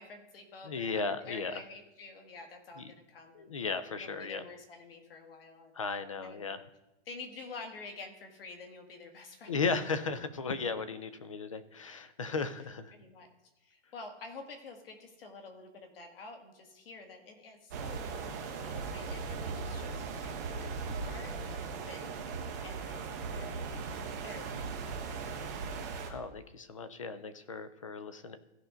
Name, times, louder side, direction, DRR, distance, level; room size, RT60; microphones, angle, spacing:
voice 1, 0.0-3.5 4.0-5.8 6.2-6.4 7.1-9.5 12.9-13.3 13.6-25.5, left 3 dB, 55° left, 4 dB, 2.0 m, -49 dB
voice 2, 0.6-1.5 2.8-2.9 3.3-4.4 5.7-6.6 9.5-12.9 26.1-28.4, left 4 dB, 30° left, 13 dB, 0.4 m, -35 dB
sound 1, 17.7-26.1, right 5 dB, 15° right, 0.5 m, -38 dB
16.0 x 5.6 x 3.8 m, 0.95 s
hypercardioid pair, 175°, 34 cm